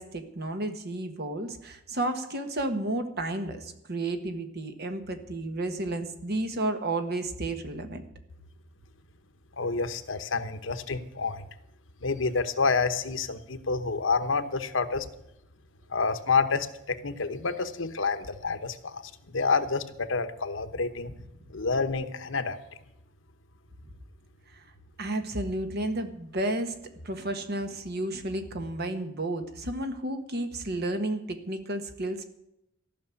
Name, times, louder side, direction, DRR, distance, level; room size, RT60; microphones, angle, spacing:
voice 1, 0.0-8.0 25.0-26.7 27.0-32.2, right 1 dB, 55° right, 7 dB, 1.5 m, -32 dB
voice 2, 9.6-11.5 12.0-15.1 15.9-21.1 21.5-22.6, left 4 dB, 75° left, 10 dB, 1.0 m, -28 dB
14.5 x 6.3 x 9.6 m, 0.83 s
head